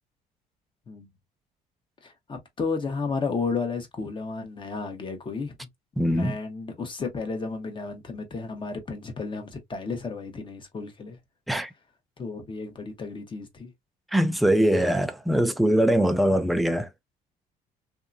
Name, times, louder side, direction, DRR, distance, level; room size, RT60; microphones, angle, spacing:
voice 1, 2.0-5.5 6.1-11.2 12.2-13.7, left 4 dB, 30° left, 1.1 m, -33 dB
voice 2, 6.0-6.3 11.5-11.7 14.1-16.9, equal, ahead, 0.4 m, -22 dB
2.8 x 2.4 x 2.5 m
cardioid pair, 110°, 17 cm